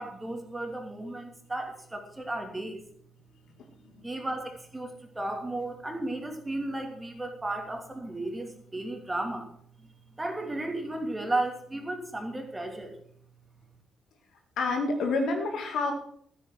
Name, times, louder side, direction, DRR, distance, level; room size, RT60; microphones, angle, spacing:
voice 1, 0.0-2.8 3.9-9.5 9.8-9.9 10.2-13.0, right 2 dB, 15° right, 4 dB, 2.8 m, -34 dB
voice 2, 3.6-4.1 14.6-15.9, left 3 dB, 60° left, 4 dB, 2.1 m, -29 dB
14.0 x 8.7 x 6.2 m, 0.63 s
figure-of-eight pair, 40°, 0 cm